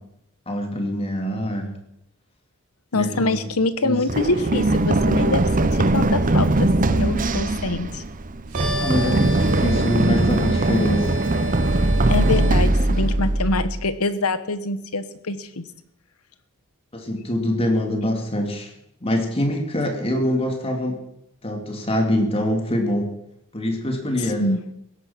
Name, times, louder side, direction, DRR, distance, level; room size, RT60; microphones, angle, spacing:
voice 1, 0.5-1.7 2.9-3.5 3.8-4.0 8.8-11.1 16.9-18.7 19.0-21.0 21.4-23.1 23.5-24.4, left 1 dB, 25° left, 4 dB, 3.1 m, -24 dB
voice 2, 2.9-5.4 5.7-8.0 12.1-15.6 24.4-24.6, left 2 dB, 80° left, 13 dB, 1.4 m, -25 dB
Run, 4.1-13.8, right 2 dB, 40° right, 0.9 m, -20 dB
sound 1, 8.5-12.6, equal, 70° right, 5.9 m, -31 dB
16.5 x 13.0 x 6.0 m, 0.79 s
head